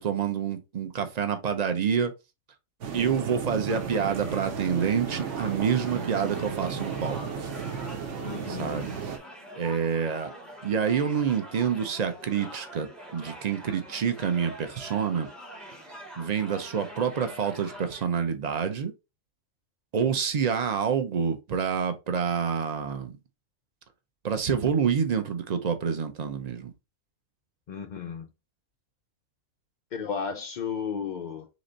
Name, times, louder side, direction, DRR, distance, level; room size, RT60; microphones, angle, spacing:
voice 1, 0.0-2.1 2.9-7.2 8.5-8.9 9.5-10.3 10.6-15.3 16.2-18.9 19.9-23.2 24.2-26.7, right 7 dB, 50° right, 0.5 m, -27 dB
sound 1, 2.8-9.2, right 6 dB, 65° right, 1.0 m, -34 dB
sound 2, 3.7-18.1, right 1 dB, ahead, 0.9 m, -44 dB
voice 2, 8.2-8.9 27.7-28.3 29.9-31.5, left 6 dB, 80° left, 0.4 m, -34 dB
4.0 x 3.2 x 3.8 m
omnidirectional pair, 1.5 m